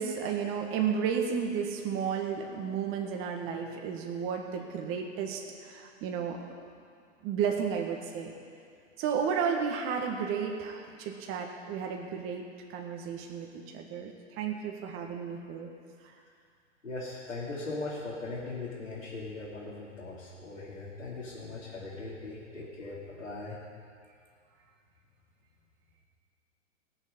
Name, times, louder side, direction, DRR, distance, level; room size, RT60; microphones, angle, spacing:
voice 1, 0.0-6.4 7.2-8.3 9.0-15.7 16.0-16.1, right 7 dB, 35° right, 1 dB, 1.6 m, -33 dB
voice 2, 16.8-23.6, left 3 dB, 90° left, -8 dB, 2.9 m, -39 dB
19.0 x 7.5 x 5.4 m, 2.2 s
hypercardioid pair, 110°, 37 cm